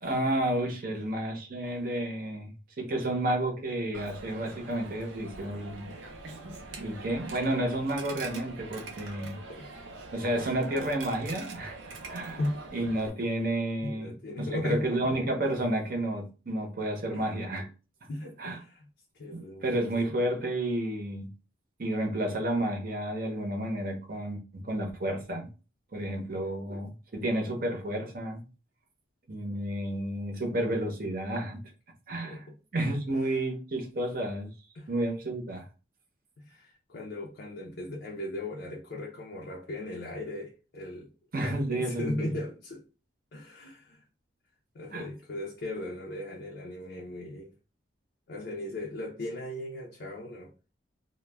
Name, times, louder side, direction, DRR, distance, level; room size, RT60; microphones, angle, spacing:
voice 1, 0.0-5.9 6.8-9.4 10.1-11.8 12.1-12.4 12.7-17.7 18.4-18.6 19.3-21.3 21.8-25.5 25.9-28.4 29.3-31.6 32.1-32.4 32.7-34.5 34.9-35.7 41.3-42.4 44.9-45.1, right 1 dB, 50° right, 0.7 m, -31 dB
Coin (dropping), 3.9-13.1, right 3 dB, 85° right, 0.6 m, -44 dB
voice 2, 12.1-12.6 13.8-14.9 17.1-17.2 18.1-18.9 19.1-19.8 32.2-32.6 33.2-33.4 34.7-34.9 36.4-41.1 41.7-42.9 43.3-44.0 44.7-47.5 48.3-50.5, left 1 dB, 60° left, 0.4 m, -37 dB
2.2 x 2.1 x 3.3 m
head